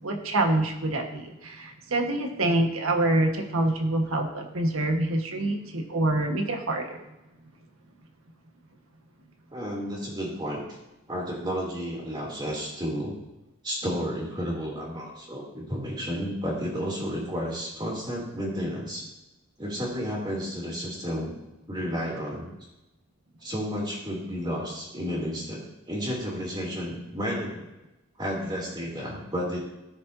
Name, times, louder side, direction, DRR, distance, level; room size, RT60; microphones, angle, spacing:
voice 1, 0.0-7.0, right 2 dB, 75° right, 3 dB, 1.5 m, -26 dB
voice 2, 9.5-10.6 11.1-13.2 13.6-19.0 19.6-21.3 21.7-22.5 23.4-27.7 28.2-29.6, equal, 20° right, -3 dB, 2.9 m, -32 dB
16.5 x 6.6 x 2.7 m, 0.96 s
head